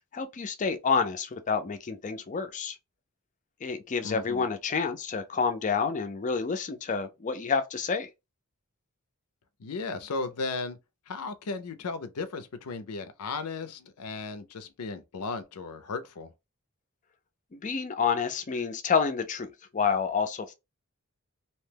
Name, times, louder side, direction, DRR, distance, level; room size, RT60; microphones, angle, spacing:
voice 1, 0.0-2.8 3.6-8.1 17.5-20.5, left 5 dB, 35° left, 0.4 m, -29 dB
voice 2, 4.0-4.4 9.6-10.8 11.1-16.3, left 3 dB, 85° left, 0.5 m, -35 dB
2.8 x 2.2 x 3.3 m
head